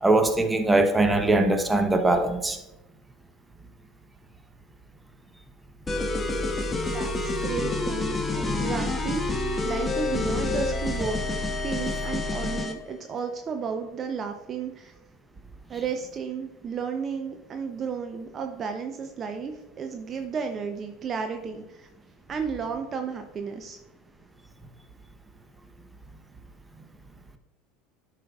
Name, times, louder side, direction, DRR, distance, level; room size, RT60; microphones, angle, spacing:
voice 1, 0.0-2.6, right 2 dB, 10° right, 6 dB, 0.9 m, -21 dB
sound 1, 5.9-12.8, left 2 dB, 20° left, 0.9 m, -28 dB
voice 2, 6.9-11.2 11.6-14.9 15.7-21.9 22.3-23.8, right 6 dB, 35° right, 5 dB, 0.6 m, -33 dB
11.0 x 5.0 x 2.4 m, 0.93 s
hypercardioid pair, 75°, 0 cm